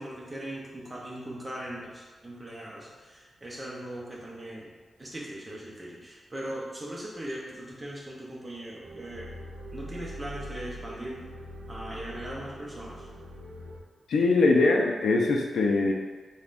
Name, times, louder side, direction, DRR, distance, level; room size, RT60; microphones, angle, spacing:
voice 1, 0.0-9.3 9.7-11.2 11.7-13.1, right 1 dB, 15° right, -4 dB, 0.5 m, -39 dB
sound 1, 8.8-13.8, equal, 80° right, 0.4 m, -42 dB
voice 2, 14.1-15.9, left 3 dB, 90° left, 0 dB, 0.3 m, -22 dB
3.4 x 2.1 x 2.5 m, 1.4 s
wide cardioid pair, 170°, 0 cm